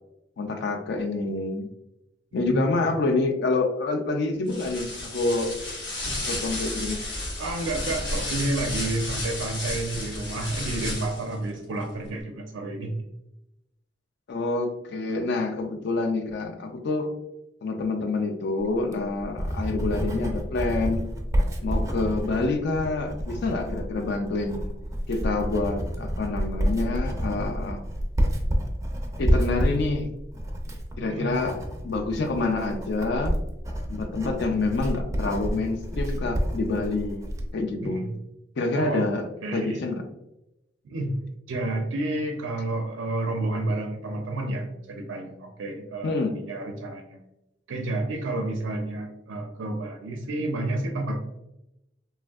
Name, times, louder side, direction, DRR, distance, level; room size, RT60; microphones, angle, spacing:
voice 1, 0.4-1.7 2.3-5.5 6.3-7.0 14.3-17.1 17.6-21.0 21.6-24.6 25.1-27.8 29.2-30.1 31.0-31.6 31.8-33.3 33.9-37.2 37.5-38.1 38.6-39.3 39.5-40.0 46.0-46.4, left 3 dB, 60° left, 5 dB, 0.4 m, -27 dB
voice 2, 2.4-2.8 7.4-13.0 31.0-31.3 37.8-38.1 38.7-39.1 39.4-39.9 40.8-41.1 41.5-47.2 47.7-51.2, right 2 dB, 85° right, 3 dB, 0.4 m, -30 dB
sound 1, 4.5-11.3, left 1 dB, 75° left, 1.2 m, -32 dB
Writing, 18.7-37.5, equal, 15° right, 0.4 m, -29 dB
3.2 x 2.5 x 2.3 m, 0.89 s
head